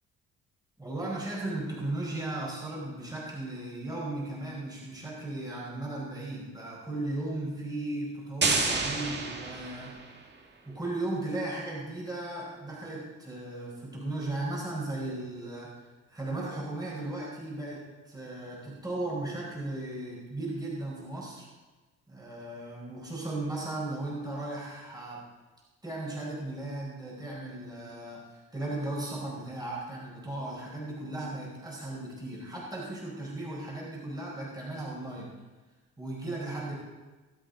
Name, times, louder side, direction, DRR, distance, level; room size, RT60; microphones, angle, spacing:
voice 1, 0.8-10.0 10.7-15.7 16.1-21.5 22.1-25.3 25.8-35.3 36.0-36.7, right 2 dB, 15° right, -4 dB, 4.8 m, -36 dB
sound 1, 8.4-10.2, right 4 dB, 35° right, 1.9 m, -29 dB
23.5 x 8.5 x 3.9 m, 1.3 s
cardioid pair, 95°, 30 cm